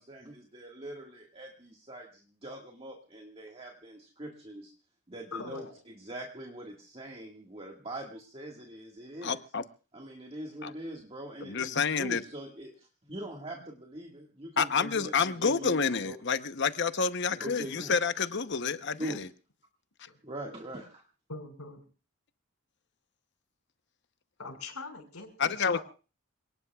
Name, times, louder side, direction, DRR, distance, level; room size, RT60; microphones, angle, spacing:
voice 1, 0.0-4.7 5.1-9.4 9.9-16.2 17.4-18.0 19.0-19.2 20.2-21.0, right 1 dB, 25° right, 1.8 m, -43 dB
voice 2, 5.3-5.8 17.4-17.5 20.1-20.2 21.3-21.8 24.4-25.8, left 3 dB, 80° left, 5.5 m, -42 dB
voice 3, 9.2-9.6 10.6-10.7 11.4-12.2 14.6-19.3 25.4-25.8, left 5 dB, 50° left, 0.9 m, -29 dB
28.0 x 19.0 x 2.4 m
head